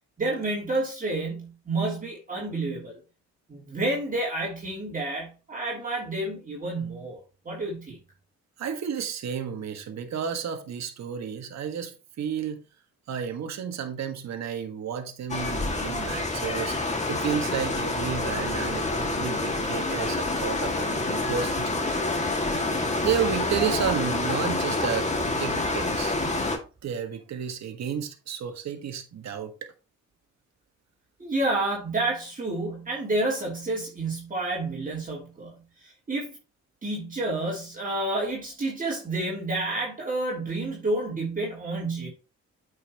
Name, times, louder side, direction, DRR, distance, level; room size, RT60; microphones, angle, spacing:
voice 1, 0.2-3.0 3.5-7.2 7.4-8.0 31.2-36.4 36.8-42.1, right 2 dB, 25° right, 2.9 m, -29 dB
voice 2, 8.6-12.6 13.1-16.8 17.1-22.0 23.0-26.2 26.8-29.5, right 8 dB, 60° right, 1.6 m, -31 dB
sound 1, 15.3-26.6, left 2 dB, 25° left, 2.0 m, -27 dB
8.6 x 5.7 x 2.9 m
cardioid pair, 90°, 30 cm